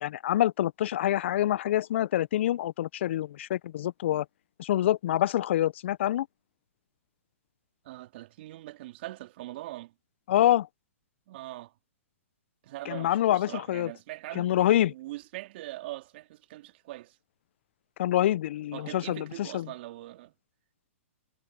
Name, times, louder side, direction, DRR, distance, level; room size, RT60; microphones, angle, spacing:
voice 1, 0.0-4.3 4.6-6.3 10.3-10.7 12.9-13.9 14.4-14.9 18.0-19.7, left 12 dB, 55° left, 0.4 m, -26 dB
voice 2, 7.8-9.9 11.3-11.7 12.6-14.5 14.8-17.2 18.7-20.3, right 17 dB, 50° right, 2.6 m, -42 dB
hypercardioid pair, 130°, 8 cm